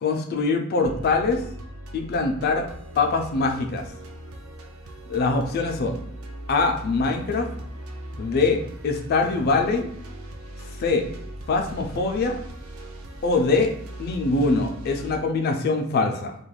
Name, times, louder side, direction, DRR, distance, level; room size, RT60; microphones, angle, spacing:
voice 1, 0.0-1.4 1.9-2.7 3.0-3.9 5.1-6.0 6.5-7.5 8.2-9.9 10.8-11.1 11.5-12.4 13.2-13.7 14.0-16.3, left 3 dB, 45° left, 3 dB, 0.3 m, -23 dB
sound 1, 0.8-15.2, right 1 dB, 65° right, 0.4 m, -39 dB
2.3 x 2.1 x 3.1 m, 0.66 s
head